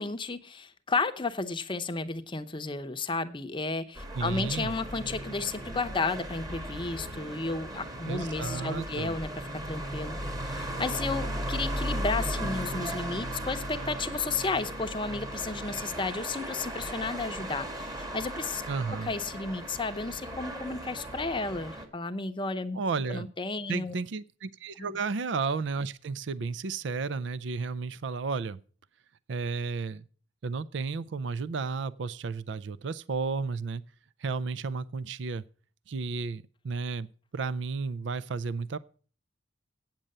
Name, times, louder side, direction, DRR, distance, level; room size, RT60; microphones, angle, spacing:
voice 1, 0.0-10.2 10.4-18.6 19.0-22.8 23.1-23.9 24.8-24.9, left 3 dB, 25° left, 9 dB, 0.7 m, -33 dB
sound 1, 4.0-21.9, equal, 20° right, 1.4 m, -36 dB
voice 2, 4.1-4.7 8.1-9.2 18.7-19.1 22.7-23.3 23.7-28.6 29.3-30.0 30.4-33.8 34.2-35.4 35.9-37.1 37.3-38.8, right 4 dB, 65° right, 17 dB, 0.4 m, -33 dB
8.7 x 7.6 x 6.6 m, 0.41 s
head